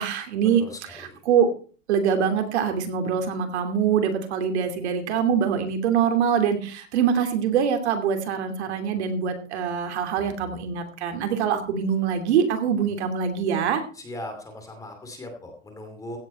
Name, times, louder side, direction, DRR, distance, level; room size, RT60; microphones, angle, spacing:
voice 1, 0.0-0.6 0.9-1.5 1.9-13.8, right 7 dB, 55° right, 6 dB, 2.8 m, -24 dB
voice 2, 0.6-1.2 13.9-16.2, left 1 dB, 10° left, 5 dB, 2.6 m, -39 dB
16.0 x 9.0 x 4.3 m, 0.39 s
supercardioid pair, 165°, 39 cm